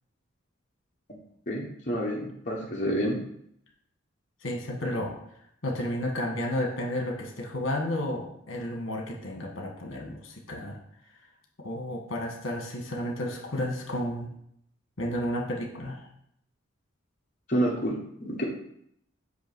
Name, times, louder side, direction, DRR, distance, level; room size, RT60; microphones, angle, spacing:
voice 1, 1.5-3.2 17.5-18.4, equal, 35° left, -4 dB, 1.1 m, -29 dB
voice 2, 4.4-5.1 5.6-10.8 11.1-11.2 11.6-14.3 15.0-16.1, left 1 dB, 70° left, 1 dB, 1.5 m, -32 dB
8.0 x 2.8 x 6.1 m, 0.71 s
head